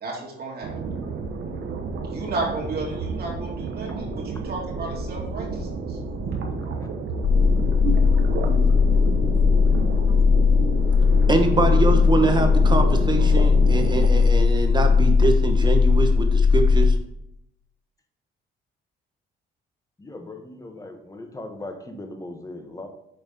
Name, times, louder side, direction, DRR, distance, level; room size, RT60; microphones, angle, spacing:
voice 1, 0.0-0.7 2.0-6.0, right 3 dB, 50° right, -3 dB, 2.7 m, -33 dB
sound 1, 0.6-14.1, right 4 dB, 70° right, 1.0 m, -30 dB
sound 2, 7.2-17.0, left 5 dB, 30° left, 0.5 m, -18 dB
voice 2, 11.3-16.9, right 3 dB, 20° right, 5 dB, 1.2 m, -24 dB
voice 3, 20.0-22.9, left 2 dB, 15° left, 5 dB, 1.1 m, -38 dB
6.7 x 4.1 x 5.3 m, 0.78 s
cardioid pair, 90°, 20 cm